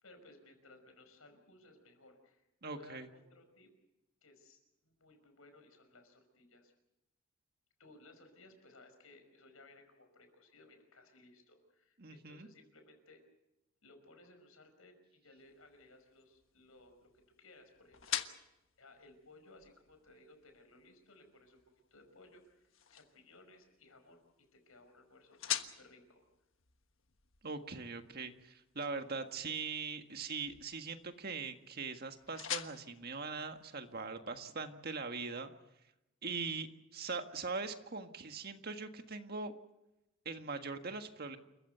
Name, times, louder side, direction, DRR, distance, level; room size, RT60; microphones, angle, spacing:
voice 1, 0.0-3.7 4.2-6.7 7.8-13.2 13.8-17.1 17.4-18.3 18.8-21.6 21.9-26.3, left 2 dB, 85° left, 7 dB, 5.5 m, -60 dB
voice 2, 2.6-3.1 12.0-12.5 27.4-35.5 36.2-39.5 40.3-41.4, right 4 dB, 50° right, 7 dB, 1.7 m, -41 dB
sound 1, 15.4-34.2, left 10 dB, 70° left, 1.4 m, -47 dB
28.5 x 15.0 x 8.0 m, 0.91 s
head